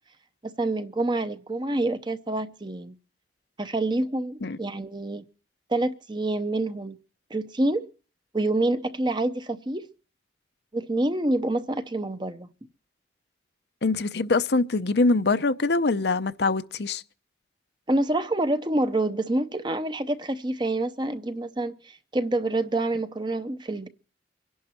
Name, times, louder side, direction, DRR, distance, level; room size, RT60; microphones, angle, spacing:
voice 1, 0.4-3.0 3.6-5.2 5.7-7.0 7.3-7.9 8.3-9.9 10.7-12.5 17.9-23.9, right 2 dB, 25° right, 0.7 m, -27 dB
voice 2, 13.8-17.0, left 3 dB, 65° left, 0.7 m, -23 dB
24.0 x 11.0 x 4.4 m
head